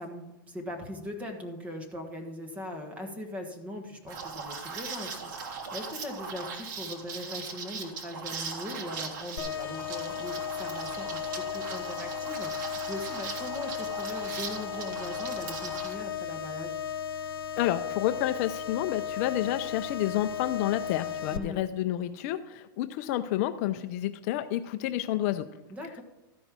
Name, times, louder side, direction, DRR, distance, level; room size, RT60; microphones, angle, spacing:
voice 1, 0.0-16.7 21.3-21.6 25.7-26.0, left 1 dB, 10° right, 5 dB, 1.4 m, -40 dB
Liquid, 4.1-15.9, right 5 dB, 55° right, 1.7 m, -39 dB
sound 1, 9.4-21.4, left 8 dB, 85° left, 1.0 m, -35 dB
voice 2, 17.6-25.5, left 13 dB, 40° left, 10 dB, 0.4 m, -29 dB
13.0 x 5.4 x 6.1 m, 0.95 s
supercardioid pair, 155°, 12 cm